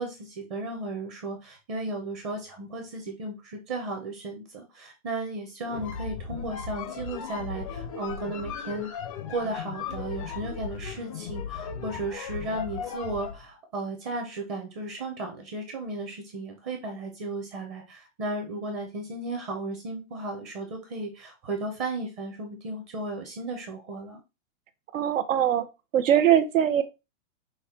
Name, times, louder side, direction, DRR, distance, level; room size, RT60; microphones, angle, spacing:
voice 1, 0.0-8.9 9.3-24.2, right 2 dB, 25° right, 0.7 m, -35 dB
sound 1, 5.6-13.4, left 6 dB, 30° left, 0.4 m, -36 dB
voice 2, 24.9-25.7 25.9-26.8, right 10 dB, 90° right, 0.9 m, -21 dB
5.5 x 2.2 x 4.2 m
hypercardioid pair, 165°, 38 cm